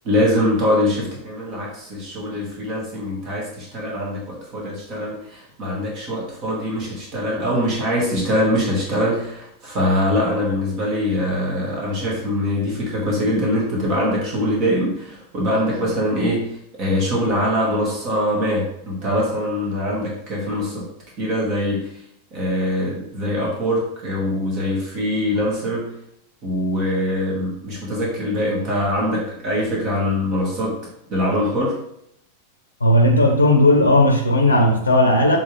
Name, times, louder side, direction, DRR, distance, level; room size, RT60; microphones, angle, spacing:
voice 1, 0.0-20.8 21.2-21.9 22.3-25.9 26.4-30.7 31.1-31.7, equal, 40° right, -3 dB, 1.8 m, -23 dB
voice 2, 32.8-35.4, left 1 dB, 80° left, 2 dB, 0.7 m, -15 dB
7.7 x 3.7 x 3.3 m, 0.73 s
figure-of-eight pair, 90°, 0 cm